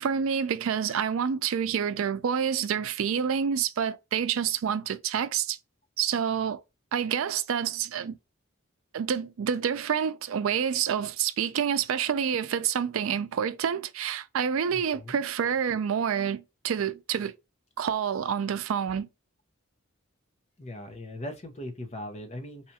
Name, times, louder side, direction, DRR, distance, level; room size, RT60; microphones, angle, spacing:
voice 1, 0.0-5.6 6.0-6.6 6.9-8.2 8.9-17.3 17.8-19.1, right 7 dB, 85° right, 0.4 m, -28 dB
voice 2, 14.7-15.2 20.6-22.7, left 1 dB, 35° left, 0.7 m, -40 dB
4.2 x 2.3 x 2.7 m
head